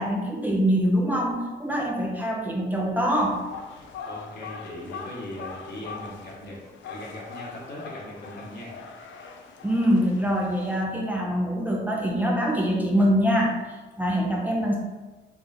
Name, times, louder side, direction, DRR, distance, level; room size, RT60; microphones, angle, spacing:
voice 1, 0.0-3.4 9.6-14.7, equal, 10° right, -2 dB, 0.5 m, -24 dB
sound 1, 3.2-10.8, left 5 dB, 70° left, 0.5 m, -42 dB
voice 2, 3.7-6.6 6.8-8.7, left 1 dB, 55° left, -4 dB, 1.2 m, -39 dB
3.7 x 3.1 x 2.5 m, 1.2 s
cardioid pair, 90°, 20 cm